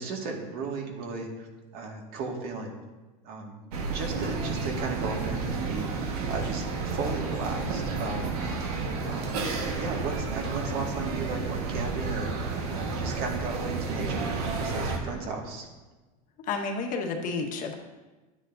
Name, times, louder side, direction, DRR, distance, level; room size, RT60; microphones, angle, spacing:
voice 1, 0.0-1.5 1.7-2.8 3.2-3.6 3.9-8.4 9.0-14.3 14.6-15.7, right 4 dB, 55° right, 0 dB, 2.0 m, -35 dB
sound 1, 3.7-15.0, right 4 dB, 85° right, 1.6 m, -31 dB
voice 2, 16.5-17.7, left 4 dB, 45° left, 2 dB, 1.5 m, -30 dB
12.0 x 9.7 x 2.7 m, 1.2 s
supercardioid pair, 125°, 19 cm